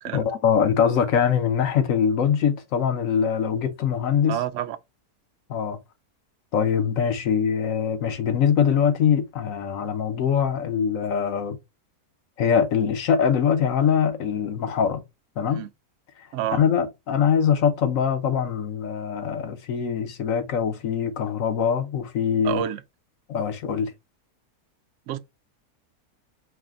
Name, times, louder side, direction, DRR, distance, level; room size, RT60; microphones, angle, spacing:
voice 1, 0.1-4.4 5.5-5.8 6.5-11.6 12.4-15.0 15.4-15.7 16.6-22.6 23.3-23.9, left 7 dB, 65° left, 1.1 m, -23 dB
voice 2, 4.3-4.8 15.5-15.7 16.3-16.6 22.4-22.8 25.1-25.2, right 12 dB, 70° right, 0.8 m, -28 dB
4.8 x 2.1 x 3.6 m
omnidirectional pair, 1.6 m